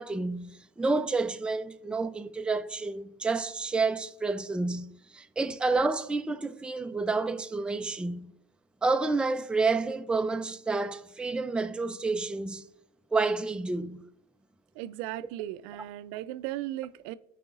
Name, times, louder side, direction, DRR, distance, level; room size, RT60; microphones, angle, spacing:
voice 1, 0.0-8.3 8.8-12.6 13.1-14.0, right 3 dB, 5° right, 0.4 m, -29 dB
voice 2, 14.7-17.1, right 14 dB, 85° right, 0.5 m, -36 dB
15.0 x 5.0 x 2.4 m
supercardioid pair, 85°, 31 cm